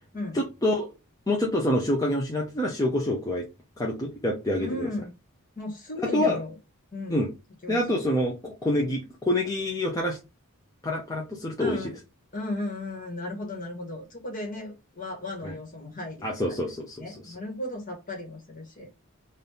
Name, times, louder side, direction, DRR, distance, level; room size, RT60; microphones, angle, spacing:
voice 1, 0.3-0.9 1.3-3.4 3.8-4.9 6.1-6.4 7.1-7.3 7.7-10.2 10.8-11.9 15.4-15.5 16.2-17.3, left 1 dB, 15° left, 0.7 m, -27 dB
voice 2, 4.6-5.1 5.6-6.5 6.9-7.2 7.6-8.0 11.6-12.0 12.3-18.9, left 2 dB, 40° left, 1.7 m, -35 dB
4.1 x 2.7 x 3.5 m
head